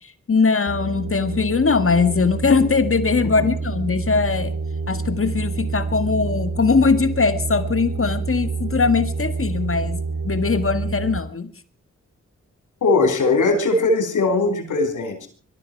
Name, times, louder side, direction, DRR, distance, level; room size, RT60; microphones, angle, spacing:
voice 1, 0.0-4.5 4.9-11.5, left 4 dB, 45° left, 12 dB, 1.8 m, -21 dB
sound 1, 0.7-11.2, right 4 dB, 85° right, 2.3 m, -28 dB
voice 2, 12.8-15.3, left 3 dB, 85° left, 7 dB, 4.8 m, -19 dB
22.0 x 14.0 x 4.6 m, 0.40 s
cardioid pair, 55°, 30 cm